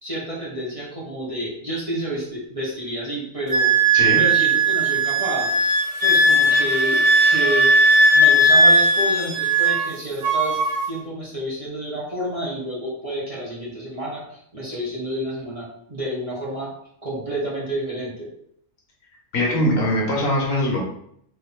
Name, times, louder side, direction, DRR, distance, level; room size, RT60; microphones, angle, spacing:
voice 1, 0.0-3.7 4.1-5.7 6.0-7.6 8.1-10.6 10.9-16.7 17.0-18.3, equal, 25° right, -7 dB, 1.5 m, -29 dB
Wind instrument woodwind instrument, 3.5-9.9 10.2-10.8, right 1 dB, 50° right, 0.5 m, -17 dB
voice 2, 19.3-20.8, left 1 dB, 70° left, -2 dB, 1.6 m, -21 dB
4.3 x 3.3 x 3.6 m, 0.70 s
omnidirectional pair, 1.5 m